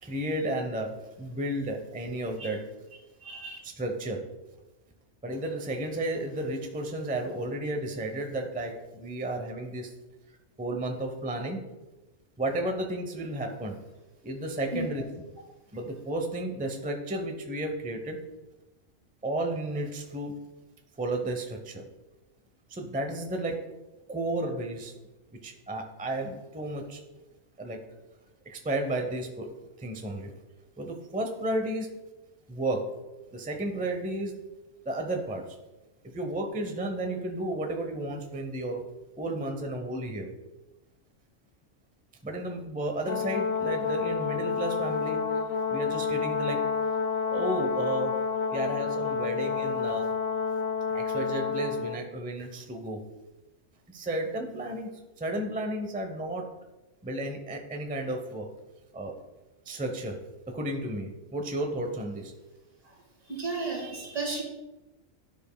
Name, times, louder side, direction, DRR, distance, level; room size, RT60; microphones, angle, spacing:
voice 1, 0.0-2.7 3.6-4.2 5.2-9.9 10.6-11.6 12.4-13.8 14.2-15.0 15.7-18.2 19.2-20.4 21.0-21.8 22.7-23.6 24.1-24.9 25.4-27.0 27.6-27.8 28.4-29.5 29.8-30.3 30.8-31.9 32.5-33.0 33.3-34.4 34.8-35.6 36.1-38.9 39.2-40.3 42.2-45.2 45.7-46.7 47.3-48.2 48.5-50.1 50.9-53.1 53.9-54.9 55.2-56.5 57.0-58.5 58.9-59.2 59.7-60.2 60.5-62.3, right 1 dB, 10° right, 4 dB, 0.5 m, -32 dB
voice 2, 3.2-3.6 14.7-14.9 62.8-62.9 63.3-64.4, right 3 dB, 65° right, 0 dB, 2.0 m, -33 dB
Brass instrument, 43.1-52.0, left 5 dB, 60° left, 0.7 m, -29 dB
11.5 x 5.1 x 2.2 m, 1.0 s
omnidirectional pair, 1.4 m